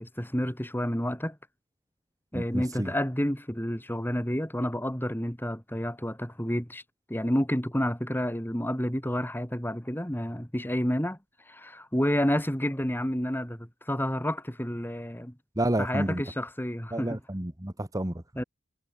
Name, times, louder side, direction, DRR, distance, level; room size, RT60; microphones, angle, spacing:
voice 1, 0.0-1.4 2.3-6.8 7.1-11.2 11.5-15.3 15.8-17.2 18.4-18.5, equal, 10° left, 3.3 m, -30 dB
voice 2, 2.3-2.9 15.5-16.3 16.9-18.4, right 1 dB, 15° right, 1.4 m, -30 dB
head